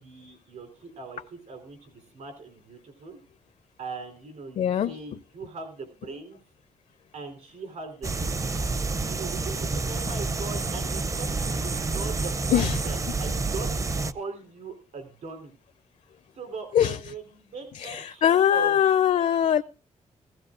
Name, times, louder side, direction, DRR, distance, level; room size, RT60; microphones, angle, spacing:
voice 1, 0.0-3.2 3.8-6.4 7.1-8.3 9.1-13.7 14.0-15.6 16.4-18.8, right 4 dB, 70° right, 3.8 m, -40 dB
voice 2, 4.6-5.0 12.5-12.8 16.7-17.0 17.7-19.6, left 9 dB, 65° left, 0.6 m, -22 dB
sound 1, 8.0-14.1, right 3 dB, 25° right, 0.6 m, -29 dB
16.5 x 16.0 x 2.6 m
wide cardioid pair, 135°, 13 cm